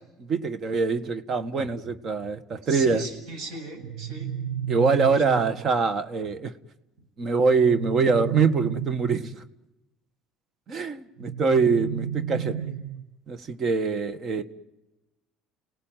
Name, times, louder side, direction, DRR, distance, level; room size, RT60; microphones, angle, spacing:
voice 1, 0.2-3.0 4.7-6.5 7.2-9.3 10.7-12.7 13.3-14.4, right 4 dB, 45° right, 13 dB, 1.6 m, -24 dB
voice 2, 2.6-4.3 4.9-5.5 12.5-12.7, right 2 dB, 70° right, 4 dB, 7.9 m, -38 dB
sound 1, 3.8-5.8 7.5-9.5 11.2-13.2, right 10 dB, 85° right, 0.9 m, -32 dB
29.0 x 18.0 x 9.2 m, 1.0 s
supercardioid pair, 95°, 0 cm